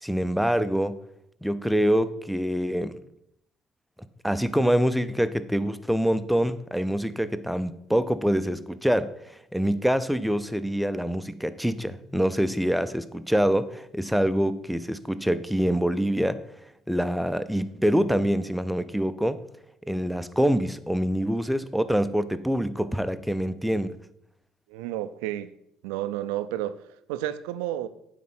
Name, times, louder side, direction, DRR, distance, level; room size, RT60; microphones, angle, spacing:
voice 1, 0.0-1.0 1.4-2.9 4.2-9.1 9.5-16.4 16.9-19.4 19.9-24.0, equal, ahead, 0.6 m, -25 dB
voice 2, 24.7-25.5 25.8-26.8 27.1-27.9, right 13 dB, 85° right, 0.4 m, -31 dB
9.4 x 3.8 x 5.8 m
supercardioid pair, 70°, 0 cm